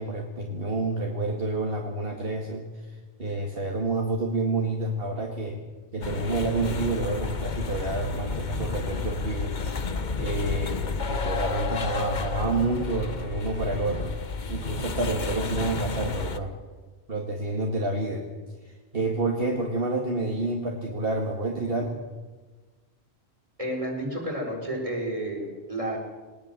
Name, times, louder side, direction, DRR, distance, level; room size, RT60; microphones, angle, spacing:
voice 1, 0.0-5.6 5.9-9.5 9.8-9.9 10.2-14.2 14.5-16.6 17.1-18.3 18.6-22.0, right 2 dB, 55° right, 1 dB, 2.1 m, -29 dB
sound 1, 6.0-16.4, left 4 dB, 45° left, 1.1 m, -31 dB
voice 2, 23.6-26.0, right 1 dB, 30° right, 1 dB, 4.8 m, -31 dB
20.5 x 19.5 x 7.4 m, 1.3 s
omnidirectional pair, 1.2 m